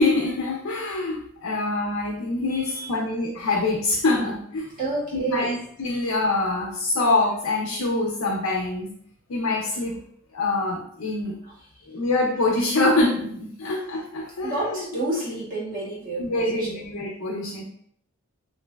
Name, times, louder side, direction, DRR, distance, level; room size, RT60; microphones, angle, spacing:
voice 1, 0.0-4.7 5.1-8.9 9.3-10.0 10.3-11.4 11.9-14.9 16.2-17.6, left 2 dB, 80° left, -2 dB, 0.5 m, -25 dB
voice 2, 4.8-5.6 14.4-16.7, right 2 dB, 40° right, -5 dB, 1.1 m, -29 dB
3.0 x 2.5 x 2.3 m, 0.66 s
head